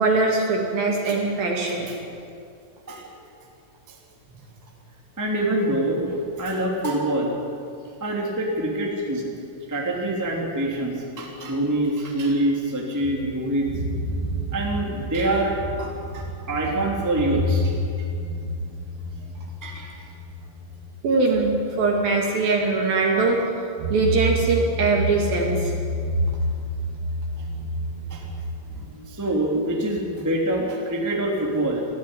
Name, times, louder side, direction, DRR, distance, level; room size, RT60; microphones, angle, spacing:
voice 1, 0.0-1.9 21.0-23.4 23.9-25.7 28.8-28.9, right 3 dB, 55° right, 0 dB, 3.3 m, -22 dB
voice 2, 5.2-7.3 8.0-9.3 9.7-13.7 14.5-17.7 19.6-19.9 28.1-28.2 28.7-31.9, right 1 dB, 5° right, -2 dB, 1.4 m, -25 dB
sound 1, 13.0-21.6 22.0-22.1 23.8-28.4, equal, 70° right, 5.4 m, -29 dB
18.5 x 14.5 x 10.0 m, 2.4 s
omnidirectional pair, 6.0 m